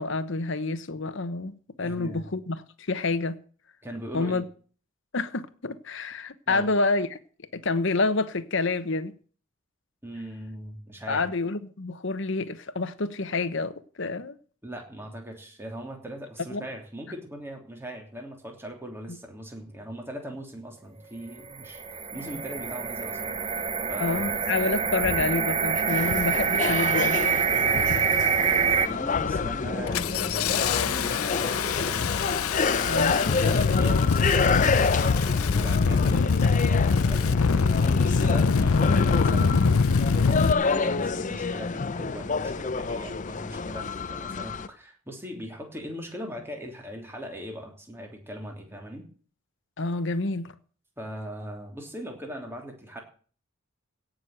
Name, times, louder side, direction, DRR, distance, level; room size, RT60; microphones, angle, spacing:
voice 1, 0.0-3.4 4.1-4.4 5.1-7.2 7.5-9.1 11.1-14.3 16.5-16.6 24.0-27.2 32.8-33.6 49.8-50.5, left 3 dB, 60° left, 1.0 m, -28 dB
voice 2, 1.8-2.3 3.8-4.4 6.5-6.7 10.0-11.2 14.6-24.3 25.9-26.1 27.5-31.4 31.7-32.1 33.4-49.1 51.0-53.0, equal, 10° right, 3.1 m, -40 dB
sound 1, 21.4-28.9, right 6 dB, 30° right, 0.7 m, -26 dB
Engine starting, 24.2-24.3 25.0-25.3 26.0-26.4 26.7-27.2 27.7-28.2 28.6-28.8 29.1-40.5, left 5 dB, 90° left, 0.6 m, -24 dB
sound 2, 25.9-44.7, left 4 dB, 35° left, 0.6 m, -29 dB
17.0 x 6.4 x 7.8 m
head